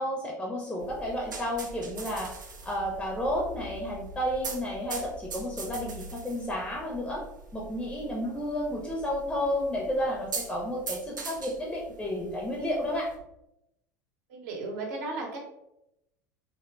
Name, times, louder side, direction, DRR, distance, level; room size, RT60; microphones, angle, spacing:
voice 1, 0.0-2.3 2.6-7.2 7.5-13.1, equal, 10° left, -1 dB, 0.5 m, -31 dB
sound 1, 0.8-13.2, right 3 dB, 80° right, 0.4 m, -42 dB
voice 2, 14.3-15.4, right 3 dB, 60° right, 0 dB, 0.8 m, -35 dB
3.0 x 2.1 x 2.4 m, 0.85 s
figure-of-eight pair, 75°, 10 cm